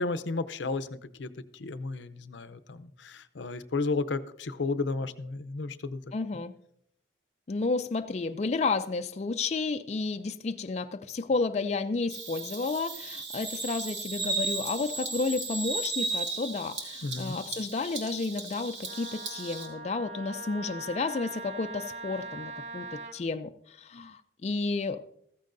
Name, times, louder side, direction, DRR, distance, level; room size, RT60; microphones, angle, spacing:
voice 1, 0.0-6.0 17.0-17.4, left 3 dB, 85° left, 13 dB, 0.6 m, -33 dB
voice 2, 6.1-6.5 7.5-25.0, left 3 dB, 35° left, 7 dB, 0.4 m, -31 dB
Bird vocalization bird call bird song, 12.1-19.7, right 3 dB, 90° right, 2.3 m, -35 dB
Wind instrument woodwind instrument, 18.8-23.2, right 2 dB, 40° right, 0.6 m, -41 dB
14.5 x 14.5 x 2.6 m, 0.71 s
head